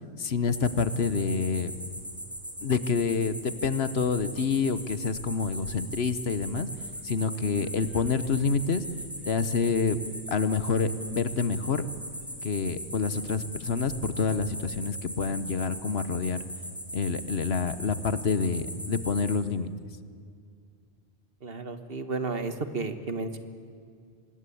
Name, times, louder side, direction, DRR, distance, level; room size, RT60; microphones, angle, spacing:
voice 1, 0.2-1.7 2.6-6.7 7.0-8.8 9.3-10.0 10.3-11.9 12.4-16.4 16.9-19.7, left 5 dB, 65° left, 14 dB, 1.2 m, -27 dB
sound 1, 0.5-19.4, equal, ahead, 2.9 m, -40 dB
voice 2, 21.4-23.4, right 3 dB, 60° right, 10 dB, 1.6 m, -32 dB
25.0 x 20.0 x 8.5 m, 2.2 s
omnidirectional pair, 1.1 m